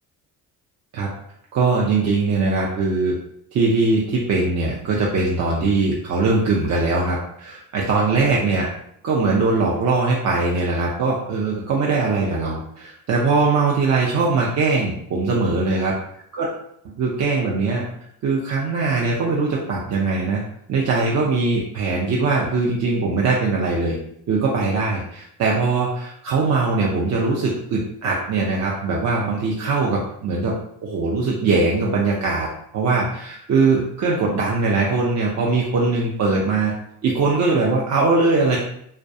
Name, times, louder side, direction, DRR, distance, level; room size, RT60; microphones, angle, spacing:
voice 1, 1.5-3.1 3.5-8.7 9.0-15.9 16.4-16.5 17.0-17.9 18.2-20.4 20.7-24.0 24.3-30.5 30.8-32.5 32.7-36.7 37.0-38.6, right 3 dB, 40° right, -3 dB, 0.5 m, -21 dB
2.3 x 2.2 x 2.6 m, 0.73 s
supercardioid pair, 70°, 42 cm